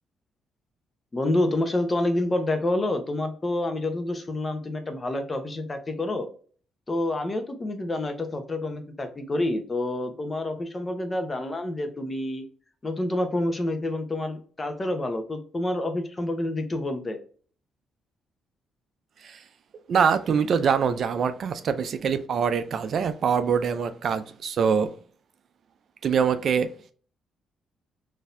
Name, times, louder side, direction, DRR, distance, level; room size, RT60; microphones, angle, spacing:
voice 1, 1.1-6.3 6.9-12.4 12.8-17.2, left 1 dB, 25° left, 0.7 m, -28 dB
voice 2, 19.9-24.9 26.0-26.7, right 6 dB, 60° right, 0.4 m, -24 dB
3.9 x 2.6 x 2.5 m
cardioid pair, 90°, 0 cm